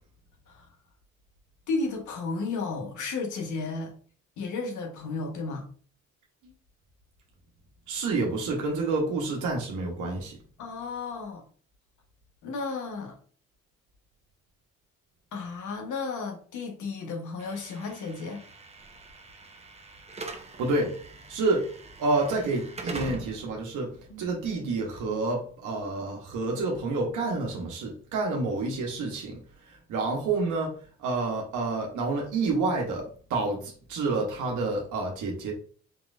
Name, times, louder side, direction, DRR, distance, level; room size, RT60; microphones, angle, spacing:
voice 1, 1.7-3.9 4.4-5.7 10.6-11.4 12.4-13.2 15.3-18.4 24.1-24.3, left 4 dB, 75° left, 1.2 m, -33 dB
voice 2, 7.9-10.3 20.6-20.9 21.3-21.7 22.0-29.4 29.7-30.7 31.0-35.5, right 3 dB, 80° right, 1.0 m, -29 dB
Slam / Alarm, 17.4-25.5, right 2 dB, 20° right, 0.7 m, -43 dB
4.3 x 3.1 x 2.5 m
cardioid pair, 90°, 30 cm